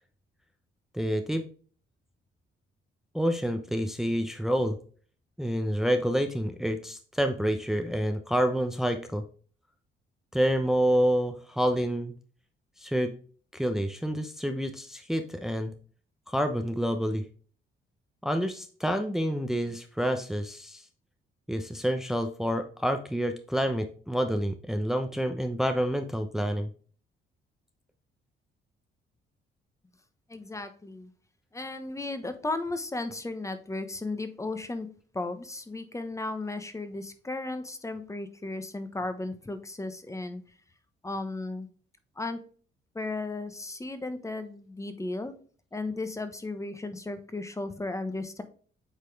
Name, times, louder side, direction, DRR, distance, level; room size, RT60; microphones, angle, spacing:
voice 1, 0.9-1.4 3.1-4.8 5.4-9.2 10.3-12.1 12.8-13.1 13.5-15.7 16.3-17.2 18.2-20.9 21.5-26.7, equal, ahead, 6 dB, 0.8 m, -28 dB
voice 2, 30.3-31.1 31.5-34.9 35.1-40.4 41.0-41.7 42.2-42.4 42.9-45.3 45.7-48.4, left 2 dB, 15° left, 9 dB, 1.1 m, -35 dB
8.2 x 4.1 x 3.4 m, 0.43 s
cardioid pair, 90°, 20 cm